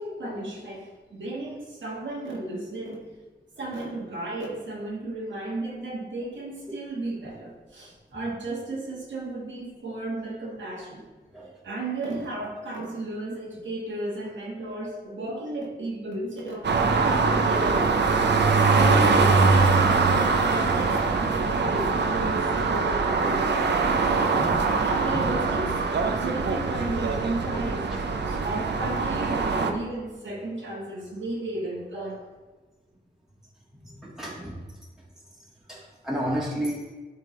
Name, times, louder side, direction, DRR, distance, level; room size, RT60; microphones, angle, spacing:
voice 1, 0.0-3.1 3.6-11.1 11.6-24.1 24.8-32.2, right 2 dB, 80° right, -4 dB, 1.5 m, -34 dB
sound 1, 16.6-29.7, right 4 dB, 65° right, 0.7 m, -23 dB
voice 2, 33.8-34.6 35.7-36.9, equal, 5° right, -5 dB, 1.9 m, -32 dB
10.5 x 3.7 x 3.2 m, 1.3 s
cardioid pair, 65°, 19 cm